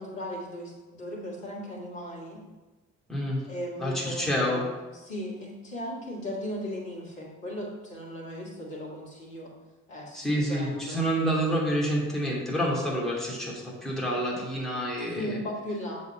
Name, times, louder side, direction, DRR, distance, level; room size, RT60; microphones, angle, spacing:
voice 1, 0.0-2.4 3.5-9.5 9.9-11.0 15.2-16.0, equal, 75° left, -4 dB, 1.8 m, -37 dB
voice 2, 3.8-4.7 10.1-15.4, equal, ahead, -5 dB, 2.5 m, -28 dB
6.9 x 4.2 x 5.5 m, 1.2 s
figure-of-eight pair, 40°, 36 cm